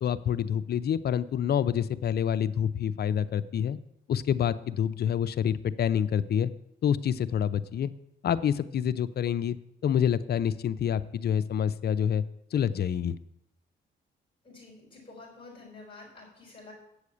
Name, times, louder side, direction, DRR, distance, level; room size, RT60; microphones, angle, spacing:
voice 1, 0.0-3.8 4.1-6.5 6.8-7.9 8.2-9.6 9.8-12.2 12.5-13.2, left 8 dB, 55° left, 15 dB, 0.6 m, -27 dB
voice 2, 14.4-16.7, left 3 dB, 25° left, -3 dB, 4.8 m, -49 dB
8.6 x 6.5 x 8.4 m, 0.81 s
cardioid pair, 90°, 20 cm